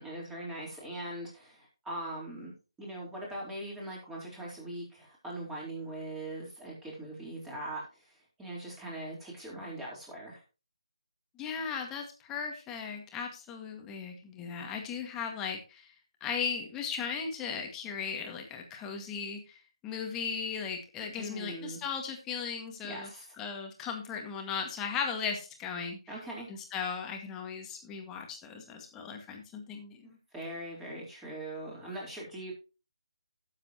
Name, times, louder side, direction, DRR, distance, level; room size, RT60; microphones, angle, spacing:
voice 1, 0.0-10.4 21.2-21.8 22.8-23.3 26.1-26.5 30.3-32.5, right 1 dB, 5° right, -3 dB, 4.1 m, -41 dB
voice 2, 11.4-15.9 16.2-19.6 19.8-23.1 23.4-26.0 26.5-30.2, left 6 dB, 15° left, 3 dB, 2.0 m, -37 dB
16.5 x 7.5 x 3.0 m, 0.32 s
figure-of-eight pair, 155°, 3 cm